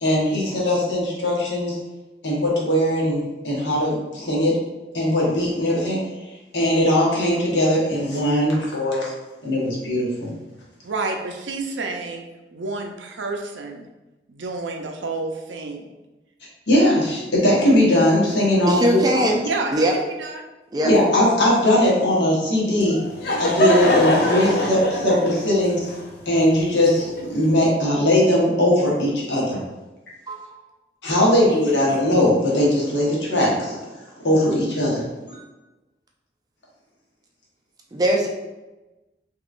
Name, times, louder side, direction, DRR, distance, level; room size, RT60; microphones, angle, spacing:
voice 1, 0.0-1.8 2.2-4.6 4.9-6.0 6.5-9.1 9.4-10.4 16.7-19.2 20.8-23.0 23.4-25.9 26.3-29.6 31.0-33.8 34.2-35.0, left 1 dB, 75° left, -4 dB, 1.1 m, -20 dB
voice 2, 10.8-13.9 14.3-15.9 19.4-19.8 20.2-20.4 20.7-20.9, right 3 dB, 80° right, 3 dB, 0.5 m, -29 dB
voice 3, 18.7-19.4 19.7-19.9 20.7-20.9 23.3-23.4 30.3-30.5 35.3-35.4 37.9-38.3, right 1 dB, 20° right, 0 dB, 0.4 m, -21 dB
Laughter / Crowd, 22.8-27.5, left 1 dB, 55° left, 0.5 m, -23 dB
3.6 x 2.9 x 2.4 m, 1.1 s
head